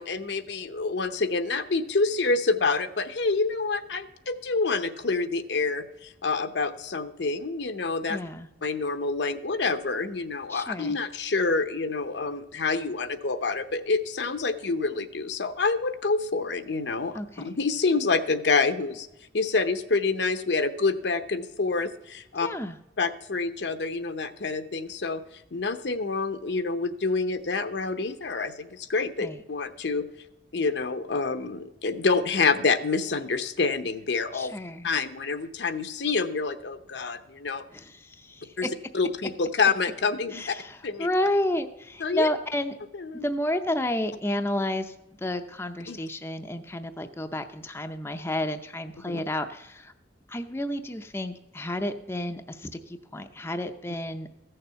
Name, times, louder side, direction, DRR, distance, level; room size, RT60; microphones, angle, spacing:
voice 1, 0.0-8.2 8.6-19.1 19.3-22.5 23.0-30.1 30.5-34.5 34.8-37.6 38.6-38.7 38.9-40.5 40.8-41.1 42.0-42.3 42.9-43.2 45.9-46.0 49.1-49.2, left 4 dB, 70° left, 9 dB, 0.8 m, -27 dB
voice 2, 8.1-8.5 10.5-11.0 17.1-17.6 22.4-22.8 29.2-29.4 34.3-34.9 37.7-38.7 40.3-42.7 43.2-49.9 50.3-54.3, left 1 dB, 15° left, 6 dB, 0.5 m, -31 dB
15.0 x 6.8 x 5.7 m, 0.91 s
head